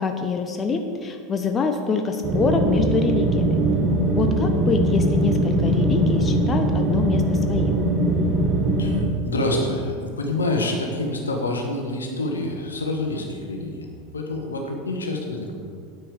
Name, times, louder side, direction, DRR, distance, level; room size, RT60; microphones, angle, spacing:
voice 1, 0.0-3.6 4.1-7.8, left 4 dB, 25° left, 6 dB, 0.8 m, -25 dB
sound 1, 2.2-9.1, right 1 dB, 30° right, 1.5 m, -21 dB
voice 2, 8.8-13.9 14.1-15.5, left 2 dB, 75° left, 2 dB, 1.4 m, -27 dB
9.4 x 9.1 x 5.0 m, 2.2 s
figure-of-eight pair, 80°, 0 cm